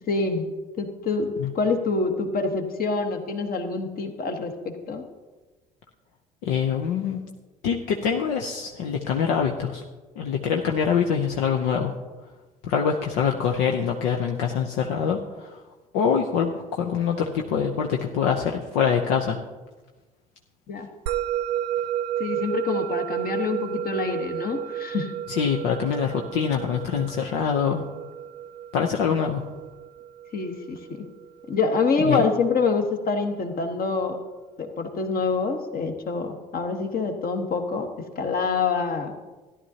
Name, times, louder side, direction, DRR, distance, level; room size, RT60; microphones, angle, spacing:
voice 1, 0.1-0.5 0.8-5.0 20.7-20.9 22.2-25.1 30.3-31.0 31.5-34.2 34.6-37.9 38.2-39.1, left 4 dB, 45° left, 5 dB, 1.4 m, -26 dB
voice 2, 6.4-7.2 7.6-9.8 10.2-11.9 12.6-15.6 15.9-19.4 25.3-27.8 28.7-29.4 32.0-32.3, left 7 dB, 70° left, 2 dB, 0.8 m, -24 dB
Musical instrument, 21.1-31.7, right 10 dB, 85° right, 0.4 m, -32 dB
14.0 x 11.0 x 2.8 m, 1.2 s
hypercardioid pair, 60°, 20 cm